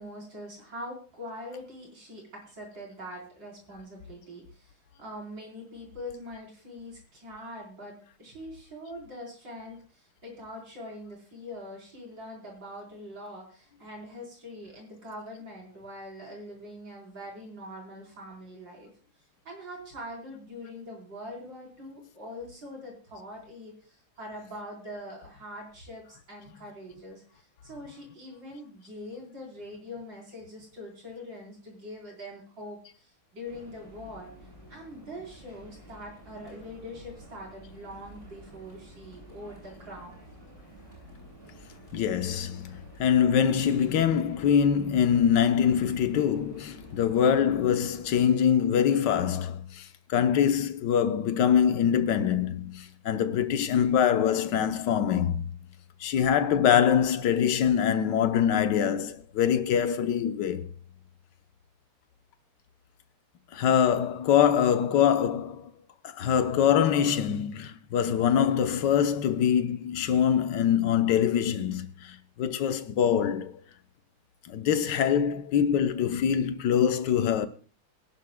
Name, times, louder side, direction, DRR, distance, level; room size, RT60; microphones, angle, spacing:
voice 1, 0.0-4.7 5.0-18.9 19.4-34.3 34.7-40.2, left 1 dB, 55° right, 4.7 m, -43 dB
sound 1, 33.5-48.3, right 1 dB, 25° right, 8.3 m, -51 dB
voice 2, 41.9-55.4 56.0-60.7 63.5-65.7 66.0-73.5 74.5-77.5, left 8 dB, 65° left, 1.3 m, -24 dB
23.0 x 11.0 x 2.2 m
omnidirectional pair, 2.3 m